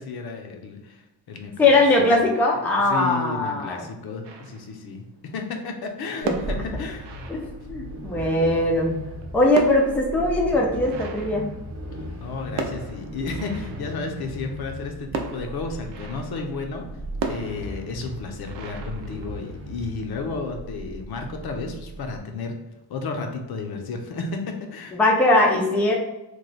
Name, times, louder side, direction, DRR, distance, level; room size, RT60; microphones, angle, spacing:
voice 1, 0.0-1.7 2.0-2.1 2.9-7.1 12.2-16.9 17.3-22.6 22.9-25.0, left 4 dB, 65° left, 4 dB, 0.6 m, -32 dB
voice 2, 1.6-3.8 6.2-6.3 7.3-8.9 9.3-11.5 24.9-25.9, left 2 dB, 5° left, -1 dB, 0.4 m, -20 dB
sound 1, 4.2-5.0 6.1-8.0 9.0-12.1 12.6-14.1 15.1-16.5 17.2-19.7, right 5 dB, 90° right, 0.6 m, -36 dB
sound 2, 6.2-22.2, equal, 30° right, 0.8 m, -37 dB
3.1 x 2.2 x 3.9 m, 0.98 s
wide cardioid pair, 145°, 41 cm